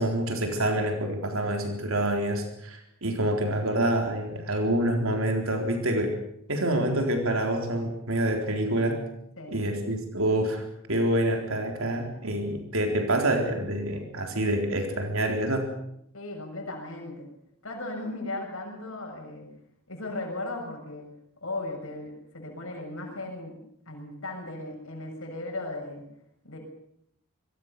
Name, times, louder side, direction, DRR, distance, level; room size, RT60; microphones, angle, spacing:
voice 1, 0.0-6.1 6.5-9.0 9.5-15.7, right 1 dB, 65° right, 4 dB, 4.0 m, -27 dB
voice 2, 16.1-17.3 17.6-19.5 19.9-21.1 21.4-23.6 23.8-26.0 26.4-26.6, left 2 dB, 65° left, 2 dB, 6.9 m, -36 dB
26.0 x 22.0 x 6.7 m, 0.74 s
head